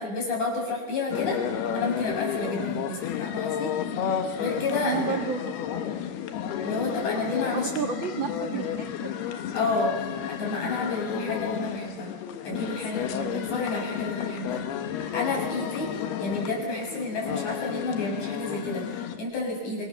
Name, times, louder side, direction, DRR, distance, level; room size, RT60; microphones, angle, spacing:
voice 1, 0.0-3.7 4.1-5.2 6.6-7.7 8.1-8.6 9.5-12.1 12.4-14.6 15.0-19.9, left 2 dB, 45° left, 0 dB, 8.5 m, -31 dB
sound 1, 1.1-19.2, left 9 dB, 75° left, 3.3 m, -32 dB
voice 2, 4.8-5.8 7.5-9.1 11.1-11.3, right 7 dB, 55° right, 4 dB, 1.4 m, -32 dB
27.0 x 26.5 x 7.1 m, 1.2 s
omnidirectional pair, 4.8 m